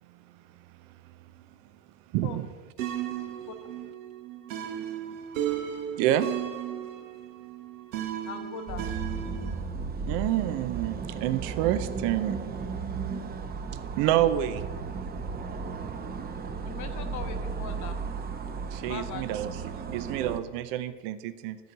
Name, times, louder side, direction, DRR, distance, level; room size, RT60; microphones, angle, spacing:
voice 1, 2.1-2.5 3.1-3.2 6.0-6.3 10.1-12.5 14.0-14.9 18.7-19.6 19.9-21.6, right 12 dB, 65° right, 12 dB, 0.7 m, -28 dB
sound 1, 2.8-9.6, right 10 dB, 85° right, 1.1 m, -35 dB
voice 2, 8.3-8.8 16.6-17.9 18.9-19.4, left 8 dB, 50° left, 6 dB, 1.2 m, -40 dB
sound 2, 8.7-20.4, right 5 dB, 25° right, 0.8 m, -35 dB
13.0 x 4.6 x 6.5 m, 1.4 s
supercardioid pair, 105°, 38 cm